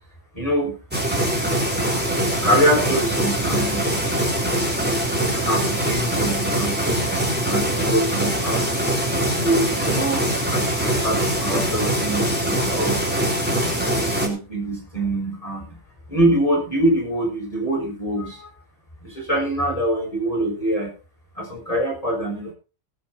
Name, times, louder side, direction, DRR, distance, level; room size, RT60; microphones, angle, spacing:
voice 1, 0.3-0.7 2.4-4.0 5.3-7.1 7.5-8.6 9.4-13.0 13.6-15.8 16.1-18.5 19.0-20.9 21.4-22.5, right 1 dB, 35° left, -2 dB, 6.6 m, -24 dB
sound 1, 0.9-14.3, right 1 dB, 10° right, 3.7 m, -23 dB
18.5 x 9.1 x 4.2 m, 0.32 s
omnidirectional pair, 1.1 m